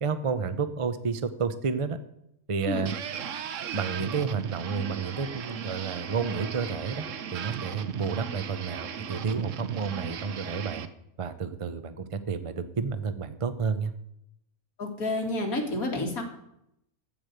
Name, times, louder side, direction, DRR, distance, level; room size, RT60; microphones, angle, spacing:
voice 1, 0.0-2.0 2.5-2.9 3.7-7.0 7.3-10.9 11.2-13.9, right 5 dB, 35° right, 11 dB, 0.5 m, -31 dB
sound 1, 2.9-10.9, right 8 dB, 60° right, 1.1 m, -36 dB
voice 2, 14.8-16.2, left 2 dB, 70° left, 2 dB, 2.6 m, -29 dB
15.0 x 5.1 x 7.9 m, 0.79 s
omnidirectional pair, 1.6 m